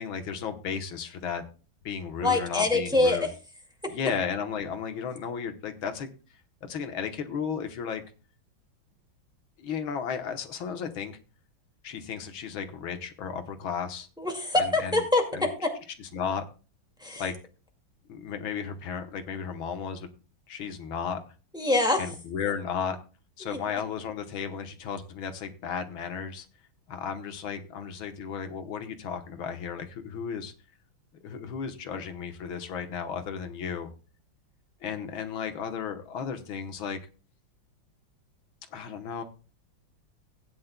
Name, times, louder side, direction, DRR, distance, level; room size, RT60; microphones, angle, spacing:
voice 1, 0.0-1.4 1.9-3.3 3.9-6.1 6.7-8.0 9.6-11.2 11.8-14.1 14.6-14.9 15.3-15.5 16.1-16.4 17.2-17.4 18.1-20.1 20.5-21.2 22.0-23.0 23.4-26.5 26.9-30.5 31.2-33.9 34.8-37.0 38.7-39.2, left 7 dB, 85° left, 7 dB, 1.9 m, -34 dB
voice 2, 2.2-3.3 14.2-15.7 17.0-17.3 21.5-22.0 23.4-23.6, left 2 dB, ahead, 2 dB, 1.8 m, -25 dB
16.5 x 9.5 x 2.2 m, 0.34 s
omnidirectional pair, 2.1 m